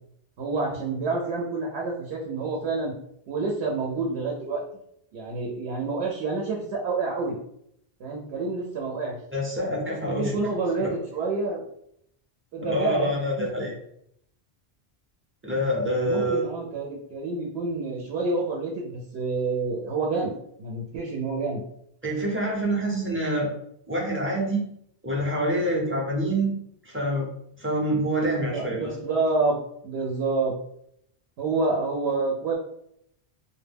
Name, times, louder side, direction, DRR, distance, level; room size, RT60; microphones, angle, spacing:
voice 1, 0.4-2.9 3.3-4.6 5.1-7.4 8.0-9.2 10.1-11.6 12.5-13.5 16.0-21.6 28.5-29.6 29.8-30.6 31.4-32.6, right 3 dB, 80° right, -2 dB, 0.8 m, -28 dB
voice 2, 9.3-10.4 10.8-10.9 12.6-13.7 15.4-16.4 22.0-23.5 23.9-24.7 25.0-26.5 26.8-27.2 27.6-28.9, right 1 dB, 20° right, -4 dB, 0.4 m, -26 dB
2.2 x 2.1 x 3.3 m, 0.74 s
omnidirectional pair, 1.1 m